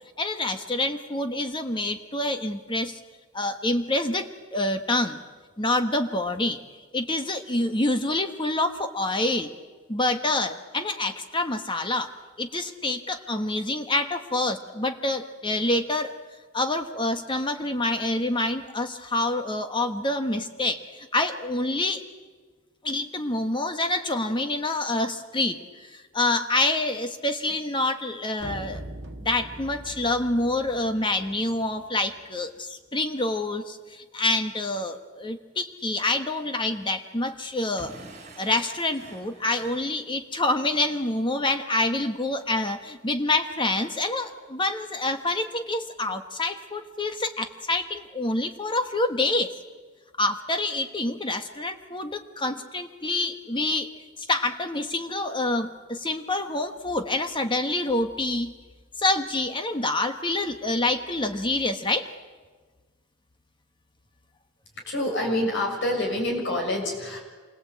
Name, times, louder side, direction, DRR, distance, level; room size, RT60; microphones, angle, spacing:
voice 1, 0.2-3.0 3.3-5.2 5.6-6.6 6.9-9.5 9.9-12.1 12.4-16.2 16.5-22.0 22.8-28.8 29.2-37.9 38.4-49.5 50.2-53.9 54.2-58.5 59.0-62.1, left 2 dB, 25° left, 7 dB, 1.3 m, -27 dB
sound 1, 28.4-32.4, right 1 dB, 55° right, 1.7 m, -42 dB
Explosion / Shatter, 37.8-40.5, right 2 dB, 35° right, 3.7 m, -47 dB
voice 2, 64.8-67.2, left 1 dB, 60° left, 1 dB, 6.5 m, -27 dB
27.0 x 21.5 x 8.5 m, 1.4 s
head